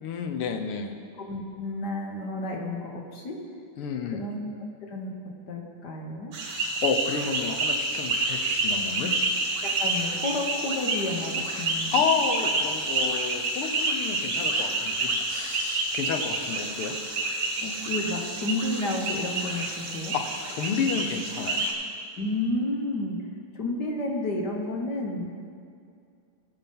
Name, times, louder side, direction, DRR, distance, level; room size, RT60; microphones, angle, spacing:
voice 1, 0.0-0.9 3.8-4.2 6.8-9.1 11.9-17.0 20.1-20.2 20.5-21.7, left 6 dB, 90° left, 5 dB, 1.8 m, -30 dB
voice 2, 1.2-3.4 4.0-4.5 4.9-5.1 5.5-6.3 9.6-11.9 17.6-20.2 22.2-23.2 23.5-25.3, left 2 dB, 55° left, 0 dB, 1.7 m, -31 dB
sound 1, 6.3-21.7, right 2 dB, 85° right, 2.2 m, -28 dB
17.5 x 6.0 x 5.3 m, 2.3 s
omnidirectional pair, 2.4 m